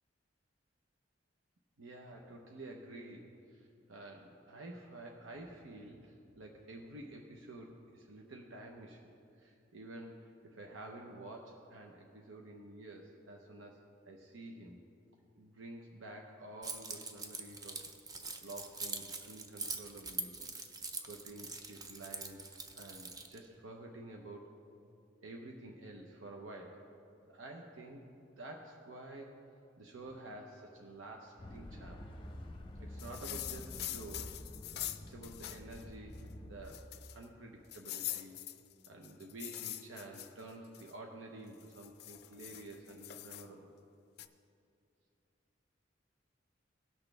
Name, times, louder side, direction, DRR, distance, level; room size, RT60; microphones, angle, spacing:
voice 1, 1.8-9.1 9.4-14.8 15.4-17.8 18.4-20.4 21.0-24.5 25.2-26.8 27.3-28.0 28.4-29.3 29.8-32.0 32.8-34.5 35.1-38.4 38.9-43.7, right 2 dB, 90° right, 1 dB, 0.8 m, -50 dB
Keys jangling, 16.6-23.4, right 3 dB, 20° right, 0.5 m, -43 dB
sound 1, 31.4-36.8, left 1 dB, 25° left, 0.7 m, -48 dB
sound 2, 33.0-35.8 36.2-36.3 36.7-37.2 37.7-40.9 41.5-43.5 44.2-44.3, left 14 dB, 55° left, 0.4 m, -44 dB
17.5 x 6.2 x 3.3 m, 2.6 s
head